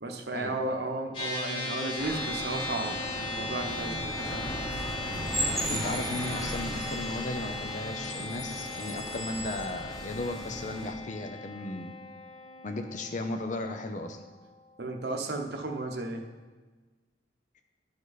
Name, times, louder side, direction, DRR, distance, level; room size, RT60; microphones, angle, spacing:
voice 1, 0.0-4.5 14.8-16.3, right 2 dB, 60° right, 3 dB, 1.0 m, -34 dB
sound 1, 1.1-14.7, left 2 dB, 30° left, 1.9 m, -38 dB
sound 2, 2.0-10.9, right 1 dB, ahead, 1.1 m, -36 dB
voice 2, 5.7-11.9 12.6-14.2, left 2 dB, 45° left, 6 dB, 0.6 m, -35 dB
12.5 x 5.2 x 4.0 m, 1.3 s
head